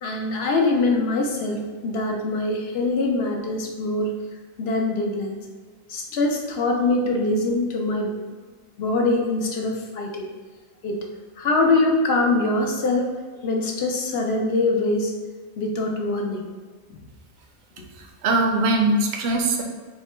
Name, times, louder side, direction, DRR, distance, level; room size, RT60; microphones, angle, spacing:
voice 1, 0.0-4.1 4.6-5.4 5.9-8.1 8.8-10.3 10.8-11.1 11.4-13.1 13.4-15.1 15.6-16.4, left 2 dB, 65° left, 1 dB, 0.7 m, -23 dB
voice 2, 17.9-19.6, right 2 dB, 60° right, 2 dB, 0.7 m, -21 dB
3.6 x 2.1 x 4.2 m, 1.5 s
omnidirectional pair, 1.4 m